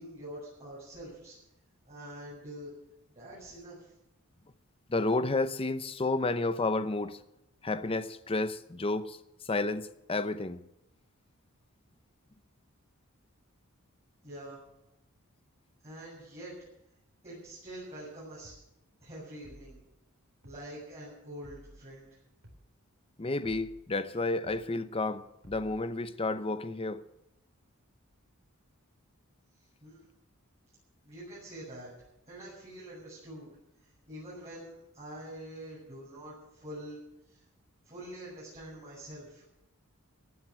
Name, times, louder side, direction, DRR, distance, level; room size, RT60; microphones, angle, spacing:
voice 1, 0.0-1.3 1.8-2.7 3.1-3.9 14.2-14.6 15.8-16.5 17.2-18.6 19.0-19.8 20.4-22.2 29.8-30.1 31.0-31.9 32.3-33.5 34.1-37.0 37.3-37.4 37.8-39.4, right 1 dB, 30° right, 7.4 m, -45 dB
voice 2, 4.9-7.2 7.6-10.6 23.2-27.0, left 2 dB, 25° left, 0.7 m, -31 dB
sound 1, 18.4-18.7 19.4-19.8 20.4-20.7 21.4-21.8 22.4-22.7 23.4-23.8 24.4-24.7 25.4-25.8, right 1 dB, 65° right, 4.1 m, -53 dB
16.5 x 9.5 x 8.8 m
head